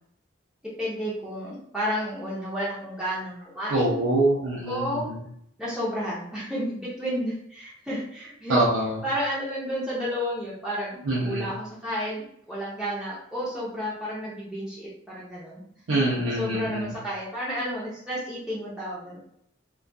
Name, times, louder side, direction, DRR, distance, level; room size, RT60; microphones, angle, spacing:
voice 1, 0.8-4.0 4.7-5.1 5.6-8.6 9.0-15.6 15.9-16.0 16.2-19.2, equal, 5° right, -9 dB, 0.6 m, -31 dB
voice 2, 3.7-5.0 8.5-8.9 11.1-11.5 15.9-16.8, right 2 dB, 85° right, -5 dB, 0.5 m, -24 dB
2.2 x 2.2 x 2.5 m, 0.69 s
head